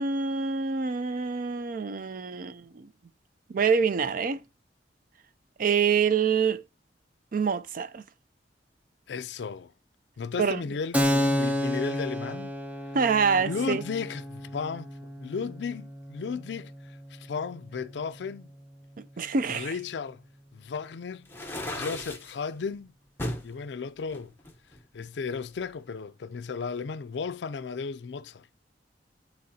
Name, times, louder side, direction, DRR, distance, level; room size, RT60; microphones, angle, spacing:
voice 1, 0.0-2.9 3.5-4.4 5.6-6.6 7.3-8.0 10.4-10.6 12.9-13.8 19.0-19.7, right 6 dB, 50° right, 0.4 m, -26 dB
voice 2, 9.1-9.7 10.2-12.6 13.4-18.5 19.5-20.2 20.5-21.3 21.7-22.9 23.4-24.3 24.9-28.5, left 5 dB, 70° left, 0.4 m, -34 dB
Keyboard (musical), 10.9-18.2, equal, 10° right, 0.7 m, -31 dB
sound 1, 21.3-22.3 23.2-23.5 24.1-25.2, left 1 dB, 10° left, 1.0 m, -35 dB
9.5 x 4.1 x 2.8 m
head